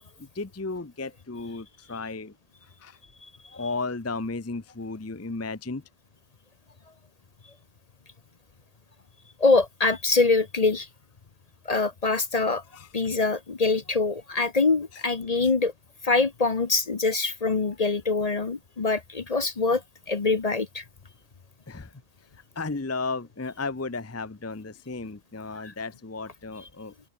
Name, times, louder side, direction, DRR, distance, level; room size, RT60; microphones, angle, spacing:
voice 1, 0.2-2.3 2.8-3.0 3.5-5.8 12.7-12.9 14.9-15.0 17.6-17.8 21.7-22.0 22.6-27.1, left 3 dB, 15° left, 0.7 m, -34 dB
voice 2, 9.4-10.9 11.7-12.6 12.9-15.7 16.0-19.8 20.1-20.8 25.6-25.7, left 3 dB, 35° left, 0.9 m, -24 dB
open air
omnidirectional pair, 1.2 m